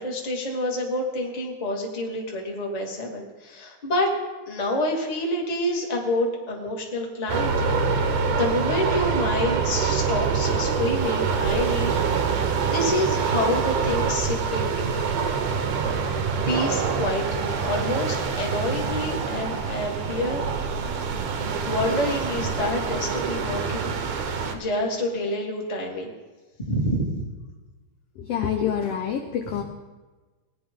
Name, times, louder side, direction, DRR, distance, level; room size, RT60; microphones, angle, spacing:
voice 1, 0.0-4.1 4.5-11.9 12.7-14.9 16.5-20.4 21.6-24.0 24.5-26.1 26.6-27.2, left 1 dB, 20° left, -1 dB, 1.1 m, -28 dB
sound 1, 7.3-24.6, right 5 dB, 85° right, 2.6 m, -25 dB
voice 2, 28.2-29.6, left 8 dB, 75° left, 3 dB, 1.5 m, -26 dB
18.0 x 9.9 x 3.7 m, 1.2 s
omnidirectional pair, 3.7 m